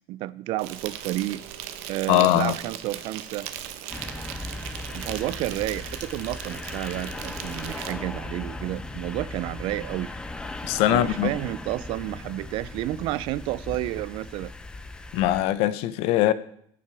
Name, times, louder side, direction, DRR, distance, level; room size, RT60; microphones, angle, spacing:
voice 1, 0.1-1.4 1.9-3.5 4.9-10.1 10.9-14.5, right 16 dB, 55° right, 0.4 m, -31 dB
Insect, 0.6-7.9, right 11 dB, 90° right, 0.9 m, -38 dB
voice 2, 2.1-2.6 10.6-11.3 15.1-16.3, left 14 dB, 75° left, 0.6 m, -21 dB
sound 1, 3.9-15.4, left 2 dB, 10° left, 0.5 m, -37 dB
15.5 x 6.0 x 4.7 m
cardioid pair, 175°, 10 cm